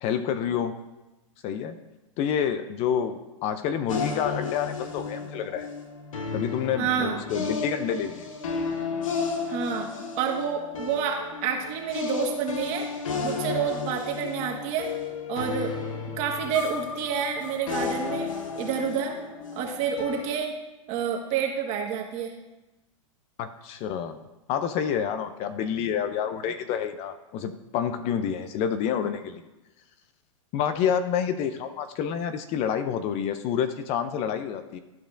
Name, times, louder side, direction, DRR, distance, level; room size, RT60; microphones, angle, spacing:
voice 1, 0.0-0.7 1.4-1.8 2.2-5.7 6.3-8.3 23.4-29.4 30.5-34.8, left 8 dB, 40° left, 10 dB, 0.5 m, -28 dB
sound 1, 3.9-20.4, left 5 dB, 80° left, 1.1 m, -33 dB
voice 2, 6.8-7.2 9.5-12.9 13.2-14.9 15.3-15.8 16.2-19.2 19.5-20.6 20.9-22.3, right 7 dB, 40° right, 0 dB, 1.6 m, -29 dB
13.0 x 4.9 x 2.5 m, 1.0 s
hypercardioid pair, 115°, 17 cm